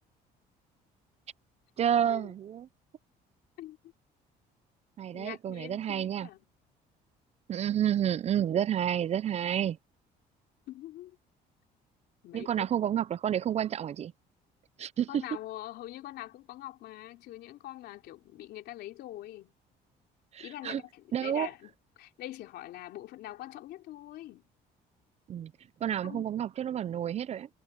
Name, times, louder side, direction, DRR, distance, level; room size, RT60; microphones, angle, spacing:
voice 1, 1.8-2.7 5.0-6.3 7.5-9.8 12.3-14.1 14.8-15.1 20.3-20.8 21.1-21.5 25.3-25.5 25.8-27.5, right 10 dB, 40° right, 0.4 m, -30 dB
voice 2, 5.1-6.5 10.7-11.2 12.2-12.7 15.1-19.5 20.4-24.5 26.0-26.3, left 14 dB, 75° left, 3.5 m, -44 dB
cardioid pair, 110°, 17 cm